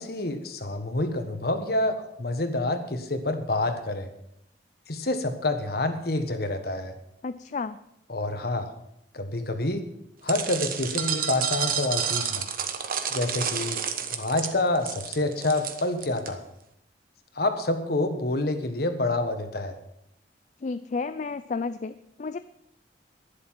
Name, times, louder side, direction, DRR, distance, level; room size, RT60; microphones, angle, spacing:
voice 1, 0.0-4.1 4.9-6.9 8.1-8.7 9.1-9.9 10.2-12.5 13.1-13.8 14.1-16.4 17.3-19.7, left 2 dB, 60° left, 7 dB, 1.5 m, -27 dB
voice 2, 7.2-7.8 20.6-22.4, left 4 dB, 45° left, 12 dB, 0.4 m, -32 dB
sound 1, 10.3-16.3, right 8 dB, 50° right, 1.2 m, -30 dB
12.0 x 11.0 x 5.9 m, 0.77 s
head